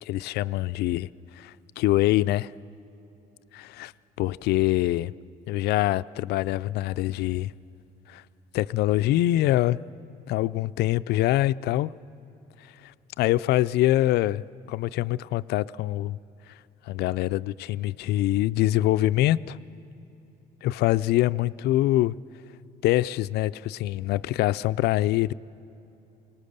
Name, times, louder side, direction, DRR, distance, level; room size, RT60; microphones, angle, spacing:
voice 1, 0.0-1.1 1.4-2.5 3.5-3.9 4.2-5.1 5.5-7.5 8.1-8.2 8.5-9.8 10.3-11.9 13.2-16.2 16.9-19.6 20.6-22.2 22.8-25.3, left 15 dB, 75° left, 16 dB, 0.4 m, -24 dB
21.5 x 19.0 x 6.7 m, 2.9 s
cardioid pair, 110°, 17 cm